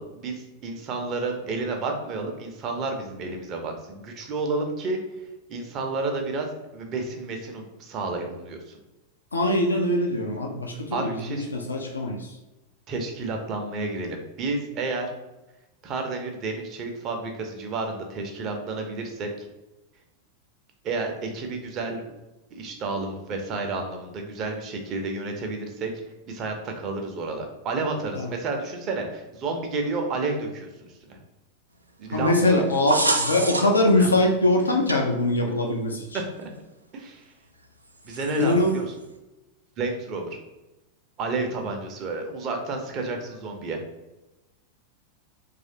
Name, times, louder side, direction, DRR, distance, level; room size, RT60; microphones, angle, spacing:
voice 1, 0.0-5.0 5.5-6.5 6.7-8.8 10.9-11.5 12.9-15.1 15.8-19.5 20.8-22.0 22.5-25.9 26.3-31.2 32.0-32.6 34.0-34.1 36.4-36.5 36.9-37.2 38.0-38.9 39.8-40.4 41.2-43.8, right 3 dB, 35° right, 3 dB, 0.6 m, -31 dB
voice 2, 9.3-12.4 28.1-28.3 32.1-36.2 38.3-38.8, left 1 dB, 75° left, 1 dB, 0.4 m, -23 dB
sound 1, 32.6-33.9 34.9-35.0 36.1-36.2 38.1-38.7, right 2 dB, 80° right, 0.3 m, -26 dB
3.1 x 2.4 x 2.7 m, 1.0 s
figure-of-eight pair, 90°, 0 cm